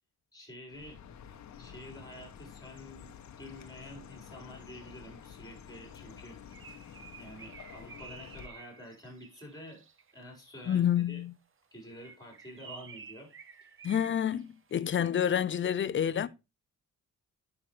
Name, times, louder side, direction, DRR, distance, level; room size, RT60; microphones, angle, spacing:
voice 1, 0.3-1.0 1.6-6.7 7.2-9.8 10.1-11.2 11.7-13.3 13.6-13.8, equal, 10° left, 4.7 m, -49 dB
Chirp tweet, 0.7-8.5, left 8 dB, 60° left, 1.0 m, -50 dB
Bird, 6.1-10.2 11.8-15.4, right 6 dB, 40° right, 0.9 m, -52 dB
voice 2, 10.7-11.3 13.8-16.3, left 9 dB, 40° left, 0.5 m, -28 dB
10.0 x 6.0 x 3.2 m
cardioid pair, 120°, 32 cm